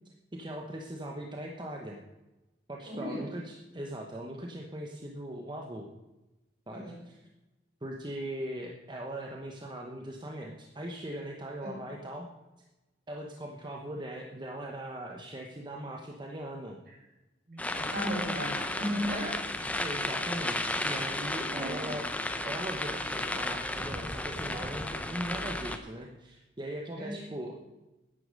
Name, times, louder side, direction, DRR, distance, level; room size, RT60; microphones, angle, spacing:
voice 1, 0.3-2.0 2.7-5.9 6.7-7.3 7.8-12.3 13.1-16.8 19.8-22.1 22.4-27.6, right 1 dB, 25° right, 1 dB, 1.0 m, -40 dB
voice 2, 2.8-3.3 6.7-6.9 11.6-11.7 17.5-19.4 21.4-21.9 27.0-27.2, equal, 55° right, -2 dB, 5.2 m, -36 dB
sound 1, 17.6-25.8, left 1 dB, 10° left, 0.8 m, -33 dB
10.5 x 9.8 x 6.6 m, 1.0 s
head